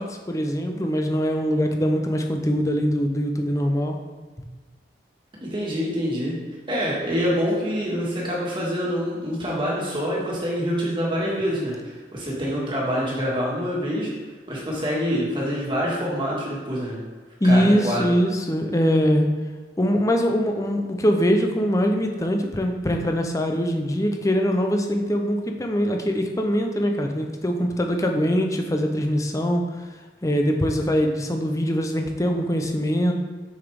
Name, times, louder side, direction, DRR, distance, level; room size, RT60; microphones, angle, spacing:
voice 1, 0.0-4.0 17.4-19.3 19.8-29.7 30.2-33.1, equal, 15° left, 3 dB, 0.6 m, -22 dB
voice 2, 5.4-6.4 6.7-14.1 14.5-17.0 17.4-18.1, equal, 25° right, -4 dB, 1.7 m, -26 dB
6.5 x 5.9 x 3.5 m, 1.4 s
head